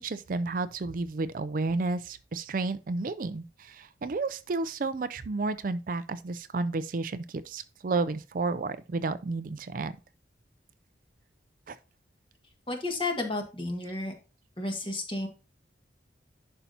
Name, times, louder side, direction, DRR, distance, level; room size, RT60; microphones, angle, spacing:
voice 1, 0.0-10.0 11.7-11.8, right 3 dB, 45° right, 0.4 m, -31 dB
voice 2, 12.7-14.1 14.6-15.3, left 2 dB, 25° left, 1.7 m, -32 dB
11.0 x 5.6 x 2.8 m
head